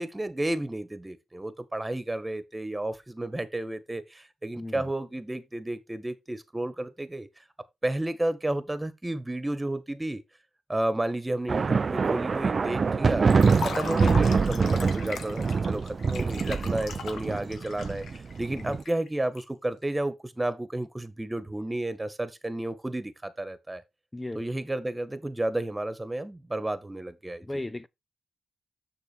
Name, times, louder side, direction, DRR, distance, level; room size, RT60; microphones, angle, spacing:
voice 1, 0.0-7.3 7.8-10.2 10.7-13.3 13.6-18.1 18.4-23.8 24.3-27.6, right 1 dB, 20° right, 1.7 m, -32 dB
sound 1, 11.5-18.8, right 5 dB, 50° right, 0.5 m, -25 dB
Liquid, 13.3-19.4, left 6 dB, 75° left, 1.5 m, -39 dB
voice 2, 27.4-27.9, left 1 dB, 20° left, 0.8 m, -36 dB
6.8 x 6.4 x 4.4 m
supercardioid pair, 45°, 0 cm